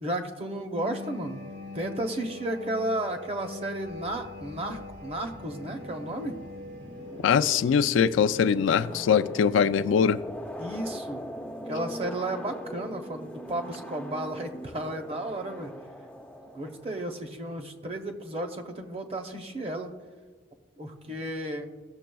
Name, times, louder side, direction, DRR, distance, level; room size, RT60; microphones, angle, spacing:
voice 1, 0.0-1.4 1.7-6.3 10.6-11.2 11.7-15.7 16.5-19.9 20.8-21.7, right 1 dB, 30° right, 0.7 m, -33 dB
sound 1, 0.8-7.3, left 2 dB, 55° right, 1.3 m, -42 dB
sound 2, 3.9-17.3, equal, 5° left, 0.4 m, -41 dB
voice 2, 7.2-10.2, left 7 dB, 75° left, 0.3 m, -22 dB
16.0 x 6.8 x 2.3 m
head